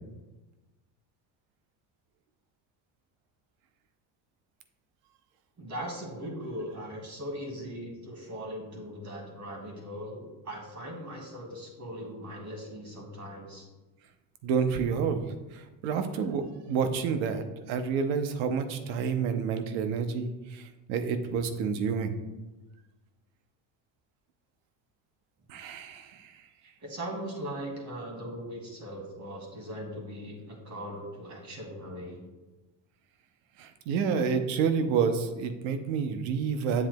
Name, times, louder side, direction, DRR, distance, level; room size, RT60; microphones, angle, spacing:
voice 1, 5.6-13.7 26.8-32.3, equal, 35° right, -1 dB, 2.3 m, -39 dB
voice 2, 14.4-15.3 15.5-20.6 20.9-22.1 25.5-26.3 33.6-36.9, right 6 dB, 85° right, 9 dB, 0.8 m, -29 dB
7.6 x 7.3 x 2.2 m, 1.1 s
supercardioid pair, 90°, 46 cm